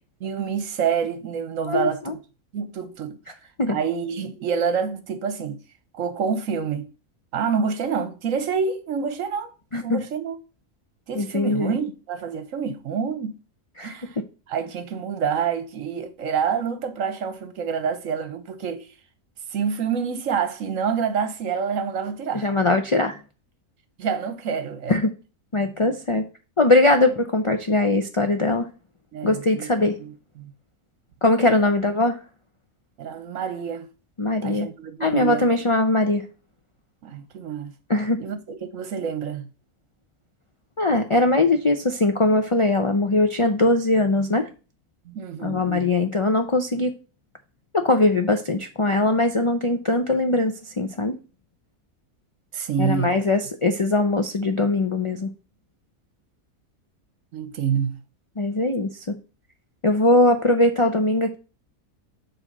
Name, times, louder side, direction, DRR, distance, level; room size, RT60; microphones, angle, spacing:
voice 1, 0.2-2.2 2.5-3.2 3.7-5.6 5.9-6.9 7.3-9.5 9.8-10.4 11.1-13.4 13.8-14.2 14.5-18.9 19.5-22.5 24.0-25.0 29.1-29.7 30.0-30.5 31.5-31.6 33.0-33.9 34.4-35.5 37.0-37.7 38.2-39.5 45.1-45.9 52.5-53.2 57.3-58.0, right 6 dB, 70° right, 1.2 m, -27 dB
voice 2, 1.7-2.1 3.6-3.8 9.7-10.0 11.1-11.8 13.8-14.0 22.3-23.2 24.9-25.1 25.5-26.2 26.6-28.7 29.2-30.0 31.2-32.2 34.2-34.7 35.0-36.2 37.9-38.2 40.8-44.5 45.4-47.0 47.7-51.2 52.8-55.3 58.4-59.2 59.8-61.3, left 2 dB, 50° left, 0.3 m, -21 dB
7.3 x 3.3 x 5.3 m
omnidirectional pair, 1.5 m